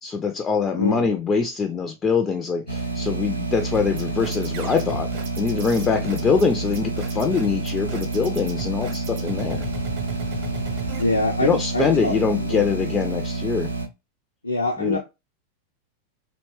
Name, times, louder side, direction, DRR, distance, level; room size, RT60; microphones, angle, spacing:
voice 1, 0.0-9.7 11.4-13.7 14.8-15.0, left 5 dB, 20° left, 0.3 m, -23 dB
voice 2, 0.8-1.2 11.0-12.6 14.4-15.0, left 2 dB, 85° left, 0.4 m, -25 dB
sound 1, 2.7-13.9, right 2 dB, 80° right, 0.6 m, -29 dB
sound 2, 3.7-11.0, right 2 dB, 40° right, 0.7 m, -35 dB
2.7 x 2.1 x 3.0 m
figure-of-eight pair, 90°, 0 cm